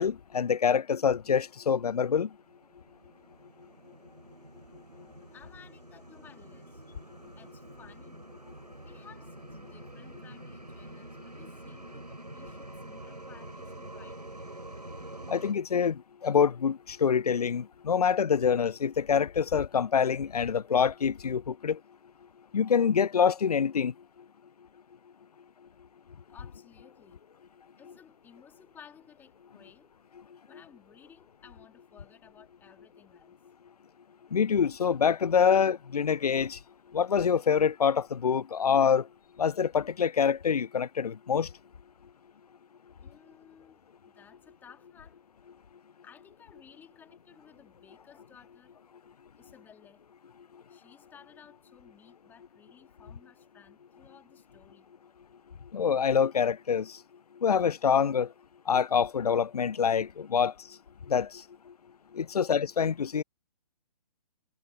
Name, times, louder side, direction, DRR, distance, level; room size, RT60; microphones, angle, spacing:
voice 1, 0.0-2.3 15.3-21.8 22.5-23.9 34.3-36.6 36.9-39.1 39.4-41.5 55.7-57.0 57.4-58.3 58.7-60.5 61.1-61.3 62.1-63.2, left 7 dB, 70° left, 0.5 m, -26 dB
sound 1, 2.4-15.5, right 1 dB, 80° right, 5.6 m, -47 dB
voice 2, 5.3-6.8 7.3-8.3 8.8-14.5 26.3-27.5 27.8-29.9 30.5-33.4 43.0-45.2 46.0-48.8 49.4-50.0 50.7-54.9 62.3-62.5, left 7 dB, 10° left, 3.4 m, -57 dB
figure-of-eight pair, 130°, 21 cm